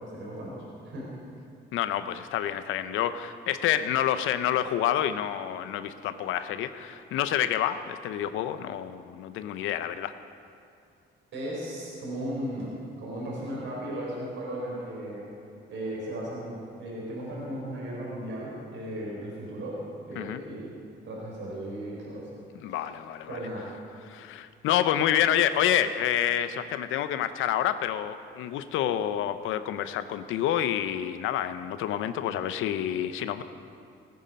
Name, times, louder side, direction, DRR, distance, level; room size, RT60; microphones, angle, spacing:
voice 1, 0.0-0.6 0.8-1.1 11.3-12.7 13.0-15.3 15.7-19.8 20.0-20.7 21.0-22.3 22.6-22.8 23.3-23.7, right 1 dB, 70° right, -4 dB, 3.8 m, -36 dB
voice 2, 1.7-10.1 20.2-20.4 22.5-23.4 24.1-33.4, left 10 dB, 90° left, 12 dB, 0.6 m, -28 dB
17.5 x 9.5 x 5.2 m, 2.4 s
cardioid pair, 90°, 20 cm